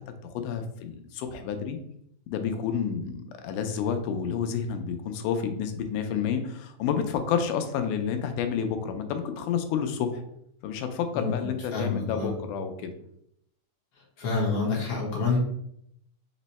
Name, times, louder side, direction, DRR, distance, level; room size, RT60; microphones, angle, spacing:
voice 1, 0.2-1.8 2.3-10.2 10.6-12.9, left 7 dB, 85° left, 6 dB, 2.1 m, -30 dB
voice 2, 11.7-12.3 14.2-15.4, left 4 dB, 65° left, -2 dB, 1.5 m, -27 dB
5.3 x 2.1 x 4.0 m, 0.72 s
omnidirectional pair, 3.6 m